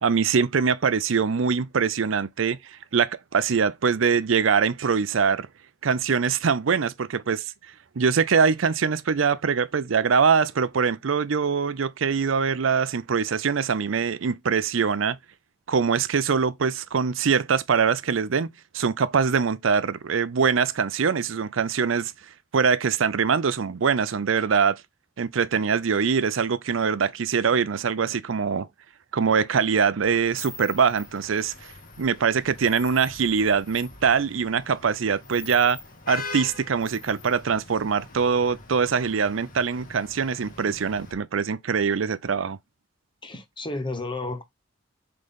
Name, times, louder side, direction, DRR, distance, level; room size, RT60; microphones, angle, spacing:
voice 1, 0.0-5.5 5.8-7.5 8.0-15.2 15.7-18.5 18.7-22.1 22.5-24.8 25.2-28.7 29.1-31.7 32.0-35.8 36.1-42.6, right 6 dB, 80° right, 0.6 m, -23 dB
Vehicle horn car horn honking / Traffic noise roadway noise, 30.0-41.1, left 4 dB, 45° left, 1.7 m, -42 dB
voice 2, 43.2-44.4, left 2 dB, 25° left, 1.0 m, -32 dB
7.8 x 3.9 x 3.6 m
head